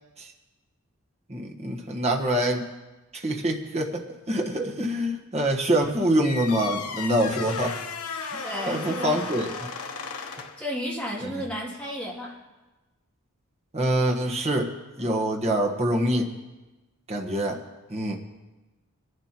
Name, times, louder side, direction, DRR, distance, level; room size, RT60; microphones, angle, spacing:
voice 1, 1.3-2.6 3.1-7.8 8.3-9.7 11.2-11.3 13.7-16.3 17.1-17.6 17.9-18.2, right 1 dB, 30° right, 0 dB, 1.3 m, -25 dB
sound 1, 6.2-10.7, left 5 dB, 80° left, 1.1 m, -35 dB
voice 2, 8.4-9.2 10.3-12.3, equal, 5° left, -6 dB, 2.6 m, -33 dB
22.5 x 11.5 x 3.0 m, 1.1 s
head